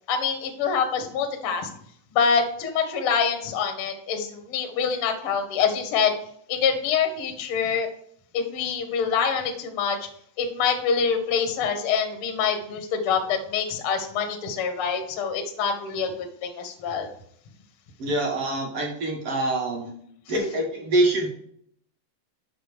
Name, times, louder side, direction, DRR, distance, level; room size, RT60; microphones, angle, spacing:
voice 1, 0.1-1.7 2.1-6.1 6.5-7.9 8.3-10.0 10.4-16.1 16.4-17.1, left 6 dB, 65° left, 4 dB, 1.5 m, -25 dB
voice 2, 18.0-19.9 20.3-21.3, right 1 dB, 50° right, -1 dB, 2.1 m, -25 dB
6.8 x 5.9 x 5.0 m, 0.66 s
omnidirectional pair, 3.9 m